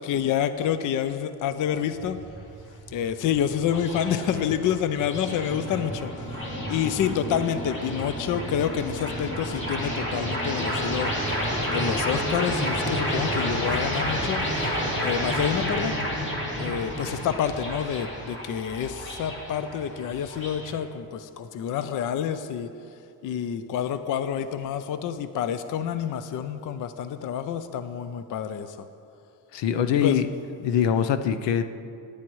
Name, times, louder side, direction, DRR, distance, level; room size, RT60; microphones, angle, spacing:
voice 1, 0.0-2.2 2.9-6.1 6.7-11.1 11.7-14.7 15.0-16.0 16.6-22.7 23.2-28.7 30.0-30.2, left 8 dB, 50° left, 11 dB, 0.5 m, -28 dB
sound 1, 1.9-20.7, equal, 25° left, 2.2 m, -30 dB
voice 2, 29.5-30.3 30.6-31.6, left 8 dB, 85° left, 10 dB, 0.7 m, -23 dB
19.0 x 9.7 x 3.1 m, 2.5 s
cardioid pair, 180°, 42 cm